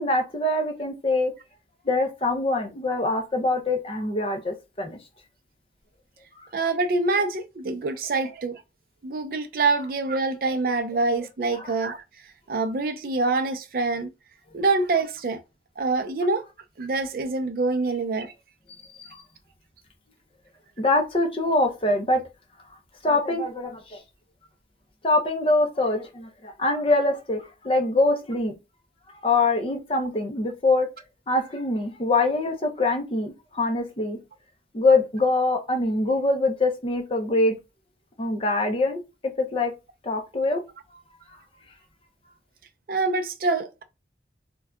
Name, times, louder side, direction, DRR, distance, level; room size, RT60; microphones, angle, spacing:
voice 1, 0.0-1.3 1.9-5.0 11.6-11.7 18.7-19.2 20.8-22.2 23.0-24.0 25.0-28.5 29.2-30.9 31.3-34.2 34.7-37.6 38.2-39.0 39.4-39.7 40.0-40.6, left 2 dB, 30° left, 0.6 m, -24 dB
voice 2, 6.5-8.6 9.0-12.0 12.5-14.1 14.5-15.4 15.8-16.4 16.8-18.3 42.9-43.8, right 3 dB, 55° right, 0.4 m, -25 dB
2.6 x 2.2 x 3.4 m
head